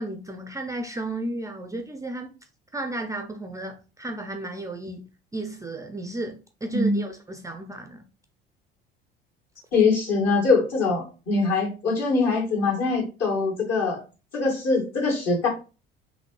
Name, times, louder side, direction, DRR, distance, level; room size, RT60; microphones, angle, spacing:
voice 1, 0.0-2.3 2.7-5.1 5.3-8.0, right 1 dB, 10° right, 0.5 m, -33 dB
voice 2, 6.7-7.0 9.7-14.0 14.3-15.5, left 3 dB, 55° left, 2.2 m, -23 dB
5.6 x 2.7 x 3.1 m
figure-of-eight pair, 60°, 29 cm